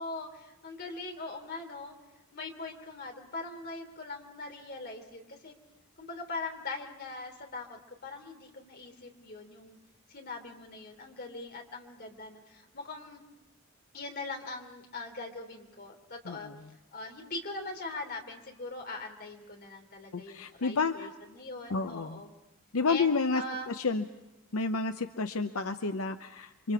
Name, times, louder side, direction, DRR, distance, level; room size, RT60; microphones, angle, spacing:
voice 1, 0.0-2.0 2.3-5.5 6.0-9.8 10.1-13.2 13.9-16.5 16.9-22.3 22.9-23.7, left 3 dB, 45° left, 3 dB, 3.2 m, -41 dB
voice 2, 20.1-21.1 21.7-22.2 22.7-24.0 24.5-26.7, left 4 dB, 80° left, 8 dB, 0.8 m, -30 dB
29.5 x 24.5 x 4.8 m, 0.97 s
head